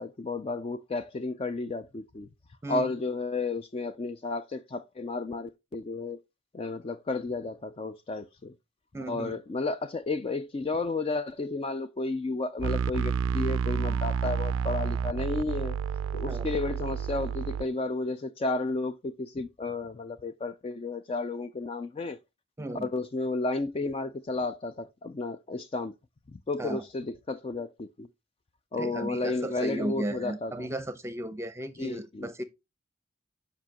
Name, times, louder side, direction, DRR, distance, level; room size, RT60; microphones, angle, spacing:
voice 1, 0.0-2.3 2.7-6.2 6.5-8.5 9.1-15.8 16.1-22.2 22.8-25.9 26.3-28.1 28.7-30.7 31.8-32.3, left 3 dB, 30° left, 0.3 m, -32 dB
voice 2, 8.9-9.4 16.3-16.5 22.6-22.9 26.6-26.8 28.7-32.4, right 1 dB, 15° right, 0.7 m, -35 dB
sound 1, 12.6-17.6, right 6 dB, 85° right, 0.3 m, -30 dB
7.4 x 5.5 x 2.9 m
head